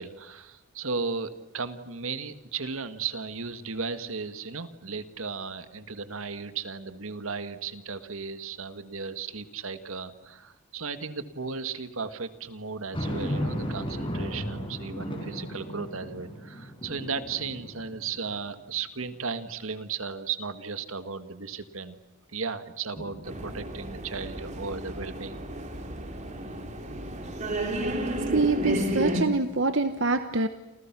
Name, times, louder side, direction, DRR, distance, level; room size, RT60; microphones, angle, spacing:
voice 1, 0.0-22.0 22.3-25.4, right 5 dB, 80° right, 10 dB, 1.8 m, -35 dB
sound 1, 12.9-18.5 19.0-19.1 23.0-24.0, equal, 25° left, 5.1 m, -35 dB
sound 2, 23.2-29.2, right 1 dB, 35° right, 2.9 m, -32 dB
voice 2, 28.2-30.5, right 3 dB, 60° right, 9 dB, 1.2 m, -25 dB
29.0 x 28.0 x 6.1 m, 0.97 s
head